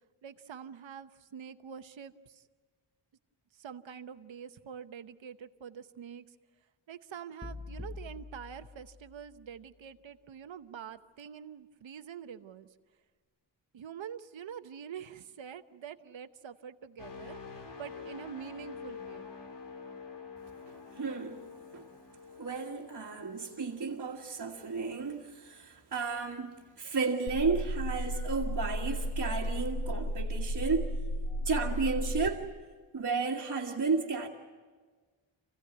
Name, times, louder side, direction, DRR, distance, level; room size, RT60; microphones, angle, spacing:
voice 1, 0.2-2.4 3.6-6.3 6.9-12.7 13.7-19.3, right 8 dB, 75° right, 1.0 m, -46 dB
sound 1, 7.4-9.6, left 3 dB, 10° left, 0.7 m, -45 dB
sound 2, 17.0-24.8 25.3-25.5, left 5 dB, 60° left, 2.8 m, -47 dB
voice 2, 20.9-21.4 21.7-21.9 22.4-30.9 31.4-32.5 32.9-34.3, right 4 dB, 45° right, 1.7 m, -33 dB
sound 3, 27.3-32.3, equal, 80° left, 2.6 m, -34 dB
28.0 x 16.5 x 9.3 m
wide cardioid pair, 170°, 46 cm